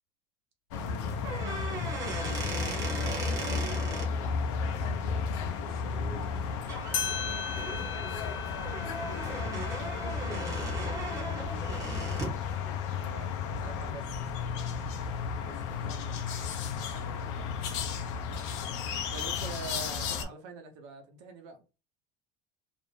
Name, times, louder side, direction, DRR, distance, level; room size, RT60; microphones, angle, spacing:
sound 1, 0.7-20.2, left 6 dB, 80° left, 0.5 m, -34 dB
voice 1, 0.7-2.0 4.8-6.9 7.2-8.3 9.0-10.7 11.3-11.8 15.4-17.0, left 2 dB, 20° left, 0.6 m, -45 dB
sound 2, 1.2-4.1 6.2-6.4 6.7-7.0 7.5-12.4, right 3 dB, 20° right, 0.6 m, -38 dB
voice 2, 3.1-3.7 13.0-14.1 16.9-17.5 18.3-18.4 19.1-21.6, right 5 dB, 75° right, 0.8 m, -45 dB
sound 3, 6.6-6.7 6.9-12.0, left 7 dB, 60° left, 1.0 m, -39 dB
2.6 x 2.1 x 3.1 m
cardioid pair, 175°, 15 cm